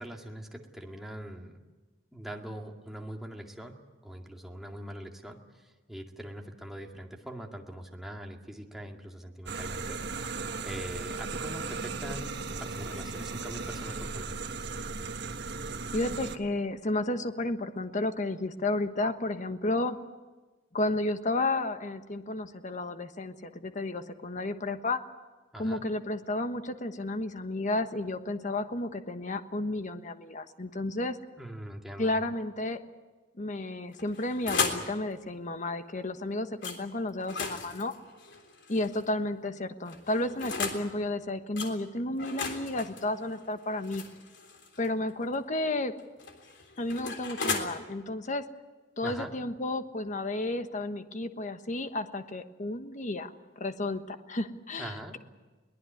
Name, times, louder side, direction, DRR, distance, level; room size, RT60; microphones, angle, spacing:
voice 1, 0.0-1.6 2.1-12.3 12.6-14.4 25.5-25.8 31.4-32.2 49.0-49.3 54.8-55.2, right 1 dB, ahead, 1 dB, 2.2 m, -42 dB
sound 1, 9.5-16.4, right 4 dB, 60° right, 1.4 m, -36 dB
voice 2, 15.9-20.0 20.7-25.0 25.6-31.2 32.0-32.8 33.4-37.9 38.7-44.0 44.8-45.9 46.8-48.4 49.0-55.2, left 2 dB, 40° left, 9 dB, 1.3 m, -32 dB
sound 2, 33.9-34.9 36.6-36.8 37.2-39.1 39.9-40.9 41.6-41.7 42.2-44.9 46.0-47.6, left 4 dB, 65° left, 3.5 m, -35 dB
22.5 x 19.0 x 9.4 m, 1.3 s
head